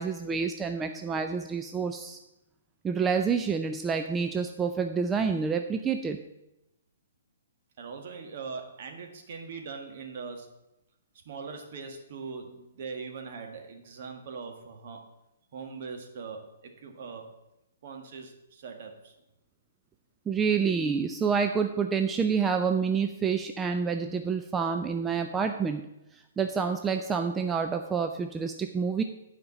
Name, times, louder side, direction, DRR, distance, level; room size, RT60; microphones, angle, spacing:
voice 1, 0.0-2.2 2.8-6.2 20.3-25.8 26.1-29.0, right 6 dB, 15° right, 6 dB, 0.5 m, -28 dB
voice 2, 7.8-10.5 11.1-15.0 15.5-17.3 17.8-19.1, right 5 dB, 50° right, 3 dB, 1.8 m, -41 dB
9.4 x 5.1 x 6.9 m, 0.91 s
figure-of-eight pair, 125°, 0 cm